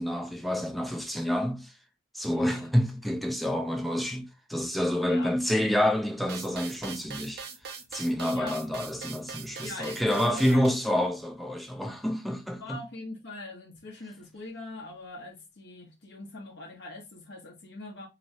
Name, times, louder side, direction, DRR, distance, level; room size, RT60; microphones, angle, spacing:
voice 1, 0.0-1.7 2.1-7.4 7.9-12.8, equal, ahead, 0.6 m, -28 dB
voice 2, 2.3-2.7 5.1-5.3 8.3-8.6 9.6-10.9 12.6-18.1, left 2 dB, 55° left, 1.0 m, -42 dB
sound 1, 6.3-10.7, right 5 dB, 50° right, 0.9 m, -41 dB
4.2 x 3.0 x 2.6 m
head